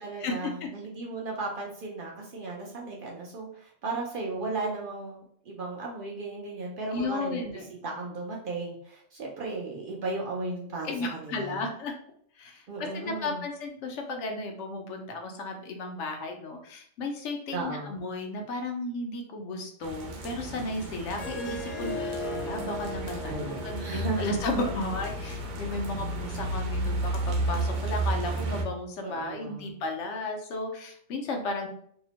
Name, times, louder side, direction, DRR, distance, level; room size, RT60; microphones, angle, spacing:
voice 1, 0.0-11.6 12.7-13.4 17.5-18.0 23.2-24.4 29.0-29.8, right 3 dB, 60° right, -2 dB, 0.6 m, -35 dB
voice 2, 6.9-7.7 10.8-11.9 12.4-31.7, left 2 dB, 75° left, 3 dB, 0.9 m, -34 dB
sound 1, 19.8-28.6, right 1 dB, 90° right, 0.9 m, -33 dB
Harp, 21.1-26.3, left 1 dB, 60° left, 0.4 m, -38 dB
2.8 x 2.0 x 2.7 m, 0.64 s
omnidirectional pair, 1.2 m